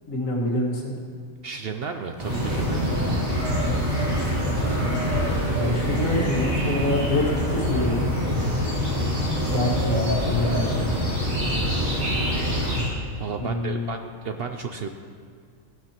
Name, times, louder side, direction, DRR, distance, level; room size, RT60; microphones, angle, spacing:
voice 1, 0.1-0.9 5.5-8.1 9.5-10.9 13.4-13.9, left 1 dB, 70° left, -2 dB, 2.2 m, -26 dB
voice 2, 1.4-2.9 13.2-14.9, right 5 dB, 60° right, 6 dB, 0.7 m, -32 dB
sound 1, 2.2-12.9, equal, 40° right, 3.7 m, -25 dB
16.0 x 12.5 x 3.0 m, 2.1 s
omnidirectional pair, 1.4 m